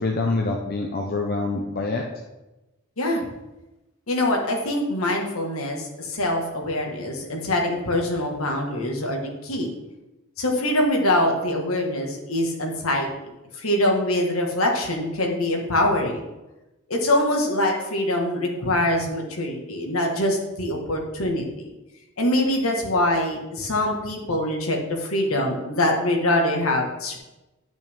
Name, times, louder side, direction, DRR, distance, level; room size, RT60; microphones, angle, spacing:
voice 1, 0.0-2.0, left 3 dB, 45° left, 0 dB, 0.8 m, -25 dB
voice 2, 3.0-3.3 4.1-9.7 10.4-13.1 13.5-16.2 16.9-21.7 22.2-27.2, left 1 dB, 75° left, 1 dB, 1.7 m, -24 dB
10.5 x 6.1 x 3.6 m, 1.0 s
head